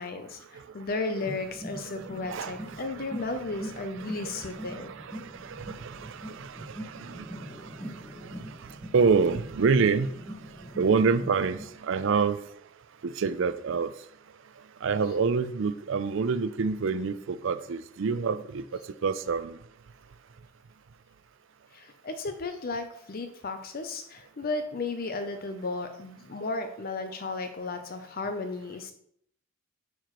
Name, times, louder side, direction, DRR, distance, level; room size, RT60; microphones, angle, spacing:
voice 1, 0.0-4.9 21.7-28.9, left 3 dB, 45° left, 7 dB, 0.5 m, -34 dB
voice 2, 0.5-0.9 1.1-1.2 1.8-12.5 13.0-14.1 14.6-19.6, right 5 dB, 60° right, 13 dB, 0.4 m, -28 dB
sound 1, 1.2-11.7, equal, 10° left, 1.2 m, -43 dB
8.9 x 4.8 x 3.0 m, 0.69 s
head